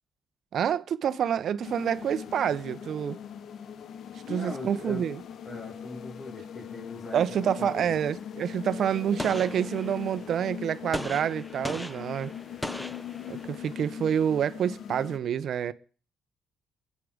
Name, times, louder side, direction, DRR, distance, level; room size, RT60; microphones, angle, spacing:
voice 1, 0.5-3.2 4.3-5.2 7.1-12.3 13.3-15.7, right 9 dB, 65° right, 0.9 m, -28 dB
sound 1, 1.6-15.2, left 8 dB, 65° left, 0.8 m, -41 dB
voice 2, 4.2-5.1 5.5-7.9, left 2 dB, 50° left, 4.0 m, -40 dB
Gunshot gunfire, 9.2-10.2 10.9-13.7, left 1 dB, 10° left, 1.0 m, -38 dB
22.0 x 8.5 x 5.1 m
cardioid pair, 90°, 0 cm